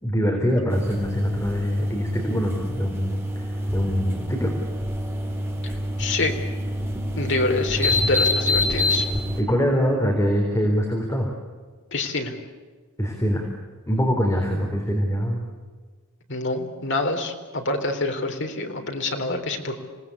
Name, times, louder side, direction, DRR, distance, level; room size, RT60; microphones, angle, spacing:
voice 1, 0.0-4.5 9.4-11.3 13.0-13.4 13.9-15.4, equal, 15° left, 0 dB, 3.7 m, -23 dB
sound 1, 0.7-9.4, left 1 dB, 10° right, 3.5 m, -26 dB
voice 2, 5.6-6.3 7.2-9.1 11.9-12.4 16.3-19.7, left 2 dB, 55° left, 4 dB, 3.7 m, -26 dB
27.5 x 18.5 x 8.4 m, 1.5 s
head